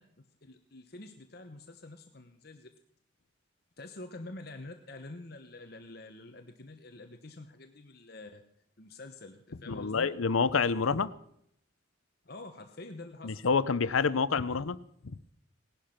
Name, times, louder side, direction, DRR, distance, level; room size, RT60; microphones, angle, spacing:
voice 1, 0.4-2.7 3.8-8.4 8.8-10.1 12.2-13.4, left 2 dB, 50° left, 5 dB, 1.1 m, -47 dB
voice 2, 9.7-11.1 13.2-14.8, left 5 dB, 85° left, 16 dB, 0.7 m, -27 dB
18.5 x 11.5 x 5.8 m, 0.71 s
head